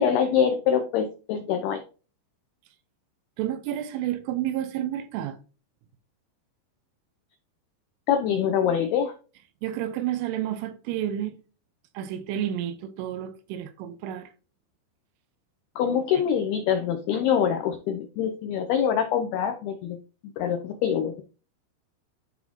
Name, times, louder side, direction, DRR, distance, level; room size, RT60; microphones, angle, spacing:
voice 1, 0.0-1.8 8.1-9.1 15.8-20.0 20.4-21.2, left 8 dB, 80° left, 2.3 m, -24 dB
voice 2, 3.4-5.4 9.6-11.4 11.9-14.3 16.2-16.3, right 11 dB, 90° right, 3.4 m, -30 dB
12.0 x 4.1 x 2.8 m
omnidirectional pair, 5.5 m